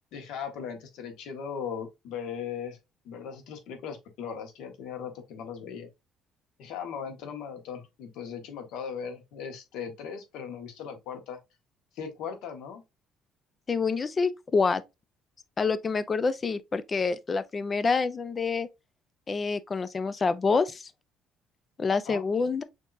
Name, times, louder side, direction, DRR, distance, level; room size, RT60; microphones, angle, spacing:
voice 1, 0.1-2.8 3.0-5.9 6.6-11.4 11.9-12.8 22.0-22.2, left 7 dB, 80° left, 1.4 m, -38 dB
voice 2, 13.7-14.8 15.6-18.7 19.3-20.8 21.8-22.6, left 4 dB, 25° left, 0.4 m, -27 dB
6.4 x 2.8 x 2.5 m
cardioid pair, 150°, 0 cm